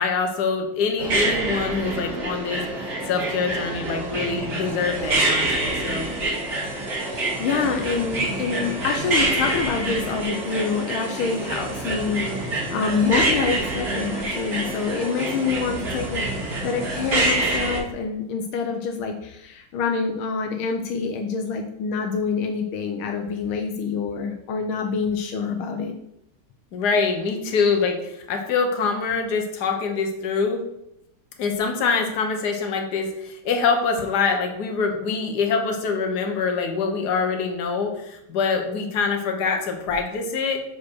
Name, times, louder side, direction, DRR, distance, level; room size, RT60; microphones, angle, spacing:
voice 1, 0.0-6.1 26.7-30.6 31.4-40.6, left 5 dB, 55° left, 3 dB, 1.6 m, -24 dB
sound 1, 1.0-17.8, right 2 dB, 45° right, 2.3 m, -26 dB
voice 2, 7.0-26.0, left 5 dB, 80° left, 4 dB, 1.5 m, -26 dB
6.1 x 5.1 x 6.2 m, 0.81 s
omnidirectional pair, 2.3 m